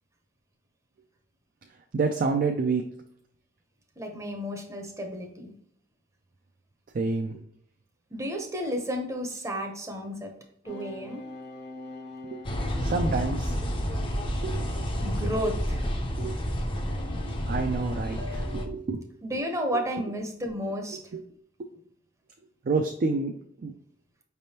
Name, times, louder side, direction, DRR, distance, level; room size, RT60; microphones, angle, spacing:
voice 1, 1.9-2.8 6.9-7.4 12.3-12.4 12.8-13.6 14.4-14.6 16.2-16.4 17.5-19.0 21.1-21.2 22.7-23.3 23.6-23.7, right 4 dB, 50° right, 4 dB, 0.4 m, -28 dB
voice 2, 4.0-5.5 8.1-10.3 10.6-11.2 15.0-15.9 19.2-21.0, equal, 15° right, 4 dB, 0.7 m, -32 dB
sound 1, 10.6-14.4 14.9-15.2, left 2 dB, 60° left, 0.8 m, -44 dB
sound 2, 12.4-18.7, equal, 30° left, 0.5 m, -30 dB
5.1 x 3.4 x 2.8 m, 0.66 s
head